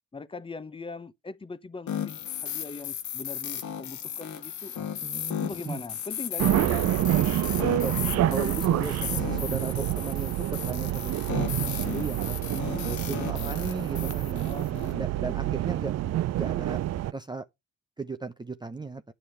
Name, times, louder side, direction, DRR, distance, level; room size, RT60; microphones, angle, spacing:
voice 1, 0.1-4.9 5.4-6.9 12.5-13.6 14.4-15.5, left 3 dB, 15° left, 0.8 m, -41 dB
sound 1, 1.9-14.9, left 9 dB, 70° left, 1.2 m, -35 dB
voice 2, 5.0-5.8 7.6-7.9 8.3-12.4 12.8-14.5 14.9-15.9 16.3-16.8 17.1-17.5 18.0-19.0, right 4 dB, 15° right, 0.6 m, -36 dB
sound 2, 6.4-17.1, right 14 dB, 60° right, 0.5 m, -27 dB
9.6 x 6.9 x 4.5 m
cardioid pair, 90°, 30 cm